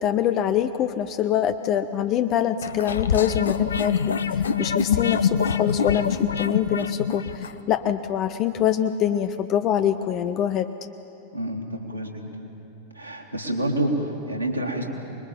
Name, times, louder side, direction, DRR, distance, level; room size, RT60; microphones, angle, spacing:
voice 1, 0.0-4.1 4.6-10.7, left 10 dB, 35° left, 11 dB, 0.7 m, -24 dB
sound 1, 2.6-7.6, left 7 dB, 70° left, 0.7 m, -24 dB
voice 2, 11.3-12.2 13.0-14.9, right 1 dB, 90° left, 1 dB, 2.7 m, -28 dB
25.0 x 21.5 x 7.2 m, 2.9 s
figure-of-eight pair, 90°, 0 cm